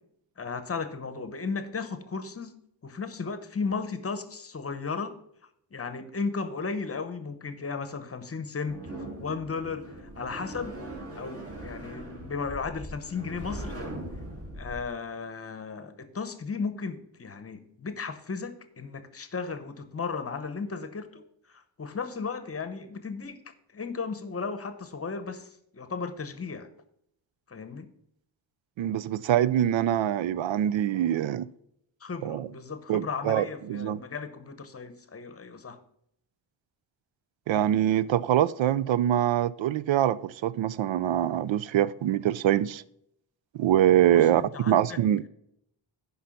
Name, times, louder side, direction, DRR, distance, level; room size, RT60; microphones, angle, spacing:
voice 1, 0.4-2.5 2.8-5.1 5.7-10.7 11.1-13.8 14.6-21.2 21.5-23.4 23.7-26.7 27.5-27.9 32.0-35.8 44.1-45.0, left 5 dB, 30° left, 0.9 m, -35 dB
sound 1, 8.7-14.9, right 1 dB, 30° right, 2.0 m, -40 dB
voice 2, 28.8-31.5 32.2-32.5 32.9-34.0 37.5-42.8 43.5-45.2, right 11 dB, 80° right, 0.5 m, -24 dB
10.5 x 5.6 x 5.7 m
wide cardioid pair, 165°, 46 cm